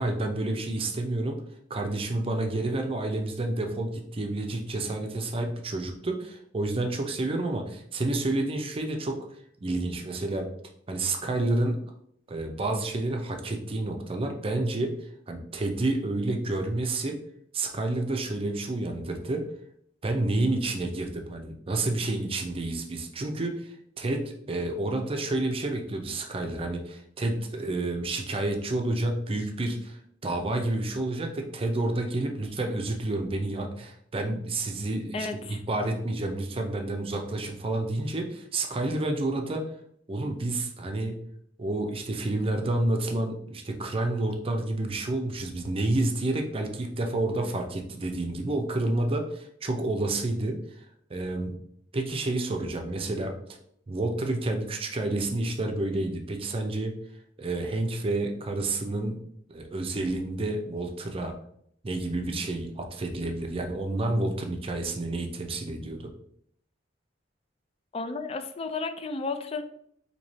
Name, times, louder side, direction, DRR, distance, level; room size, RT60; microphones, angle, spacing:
voice 1, 0.0-1.4 1.7-9.2 9.6-10.5 10.9-11.8 12.3-14.9 15.3-17.2 17.5-19.5 20.0-39.7 40.1-41.2 41.6-51.6 51.9-53.3 53.9-56.9 57.4-59.2 59.5-61.3 61.8-66.1, right 2 dB, 30° right, 4 dB, 0.5 m, -29 dB
voice 2, 35.1-35.6 67.9-69.6, left 3 dB, 35° left, 8 dB, 0.4 m, -33 dB
3.1 x 2.9 x 4.1 m, 0.68 s
head